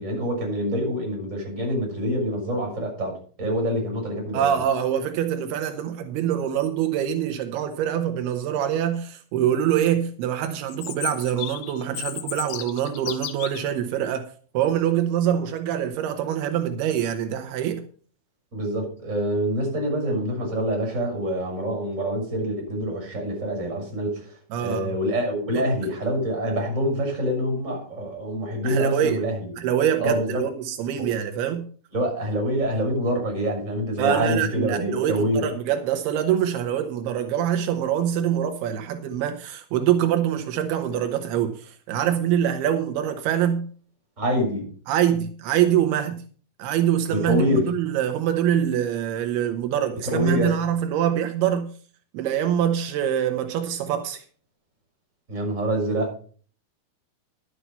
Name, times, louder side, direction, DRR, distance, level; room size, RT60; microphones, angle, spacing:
voice 1, 0.0-4.6 18.5-29.4 30.0-30.4 31.1-31.2 31.9-35.4 44.2-44.7 47.1-47.7 49.9-50.5 55.3-56.2, equal, 15° right, 6.4 m, -26 dB
voice 2, 4.3-14.3 14.5-17.8 24.5-24.9 25.5-25.6 28.6-29.2 29.6-31.6 34.0-43.7 44.9-46.2 46.6-51.7 52.1-54.2, right 10 dB, 85° right, 2.3 m, -24 dB
Chirp tweet, 10.7-13.7, left 14 dB, 80° left, 3.5 m, -34 dB
11.5 x 8.7 x 5.7 m
omnidirectional pair, 5.9 m